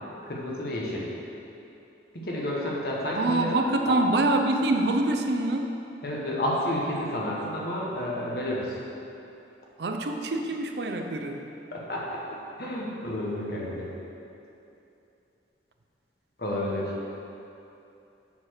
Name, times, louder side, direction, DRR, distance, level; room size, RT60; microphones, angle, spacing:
voice 1, 0.2-1.1 2.1-3.6 6.0-8.7 11.7-12.2 12.6-13.9 16.4-16.9, left 1 dB, 55° left, -4 dB, 1.3 m, -30 dB
voice 2, 3.1-5.7 9.8-11.4, right 2 dB, 65° right, 4 dB, 0.6 m, -25 dB
7.2 x 4.3 x 6.5 m, 2.9 s
head